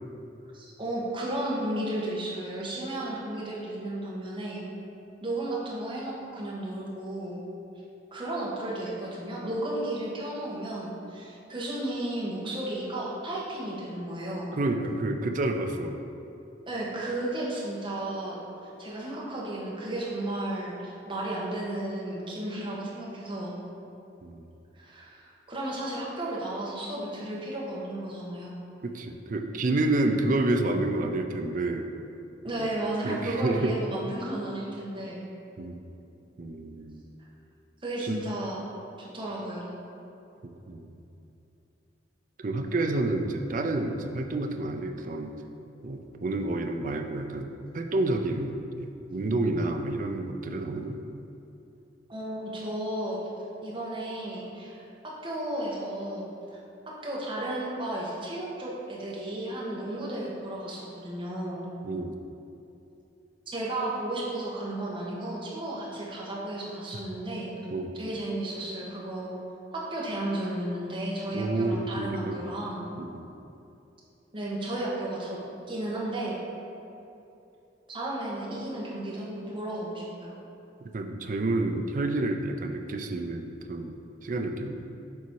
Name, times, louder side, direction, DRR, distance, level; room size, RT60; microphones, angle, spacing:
voice 1, 0.5-4.6 5.2-7.4 8.1-14.5 16.7-18.4 18.8-23.5 24.7-28.5 32.4-35.2 37.8-38.6 39.0-39.7 52.1-53.2 53.6-56.6 57.0-61.7 63.5-67.5 67.9-69.3 69.9-72.9 74.3-75.4 75.7-76.4 77.9-80.4, right 1 dB, 25° right, -5 dB, 1.2 m, -33 dB
voice 2, 14.5-16.0 24.2-24.4 28.8-31.9 32.6-32.7 33.0-33.7 35.6-35.9 36.4-37.0 38.0-38.2 40.4-40.9 42.4-45.4 45.8-51.0 61.8-62.2 67.7-67.9 71.3-72.4 73.0-73.3 80.8-84.8, right 2 dB, 45° right, 5 dB, 0.4 m, -29 dB
6.9 x 4.1 x 4.7 m, 2.8 s
head